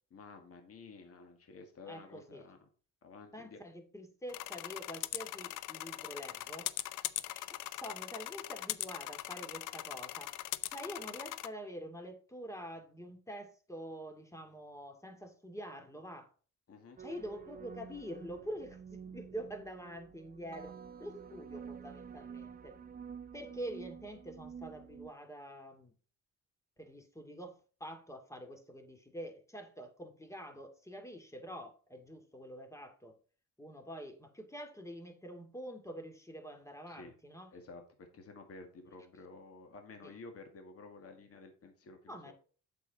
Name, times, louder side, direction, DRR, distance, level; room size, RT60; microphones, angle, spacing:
voice 1, 0.1-2.6 3.0-3.6 16.7-17.0 36.9-37.1 37.5-42.3, left 3 dB, 50° left, 2.0 m, -52 dB
voice 2, 1.9-2.5 3.3-6.7 7.3-10.4 10.7-16.3 17.0-22.8 23.3-25.9 26.8-33.2 33.6-37.5 40.0-40.1 42.1-42.3, equal, 10° left, 2.3 m, -46 dB
sound 1, 4.3-11.5, left 15 dB, 85° left, 0.6 m, -41 dB
sound 2, 17.0-25.1, right 7 dB, 30° right, 0.7 m, -49 dB
8.5 x 6.9 x 4.0 m
cardioid pair, 90°, 30 cm